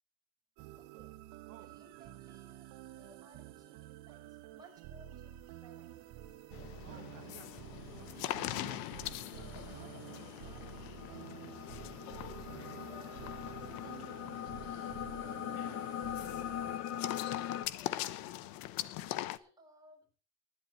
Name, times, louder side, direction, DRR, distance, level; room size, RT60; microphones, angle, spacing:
sound 1, 0.6-16.8, right 13 dB, 85° right, 1.2 m, -50 dB
voice 1, 0.7-1.2 1.5-6.0 6.9-7.4 8.6-8.8 9.3-11.2 12.9-14.1 14.7-15.0 15.7-15.8 16.6-18.3 18.8-20.1, right 2 dB, 10° right, 5.1 m, -61 dB
voice 2, 1.5-1.8 5.1-5.2 6.5-7.6 8.0-8.8 14.9-17.0 18.1-18.8, right 10 dB, 45° right, 1.4 m, -59 dB
sound 2, 6.5-19.4, left 15 dB, 80° left, 0.9 m, -43 dB
sound 3, 9.0-17.7, left 10 dB, 50° left, 0.7 m, -41 dB
19.5 x 11.0 x 3.1 m
cardioid pair, 165°, 35 cm